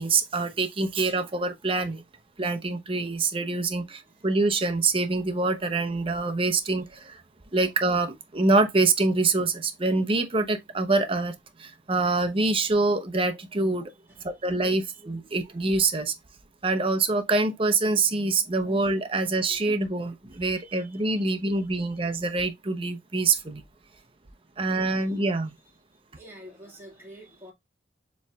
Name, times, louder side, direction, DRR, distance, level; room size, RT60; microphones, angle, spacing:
voice 1, 0.0-2.0 2.4-7.2 7.5-11.3 11.6-13.9 14.2-16.1 16.6-23.6 24.6-25.5, right 3 dB, 30° right, 0.7 m, -25 dB
voice 2, 20.4-21.0 21.4-22.0 24.9-25.2 26.1-27.5, right 1 dB, 15° right, 1.8 m, -49 dB
6.9 x 3.1 x 2.3 m
head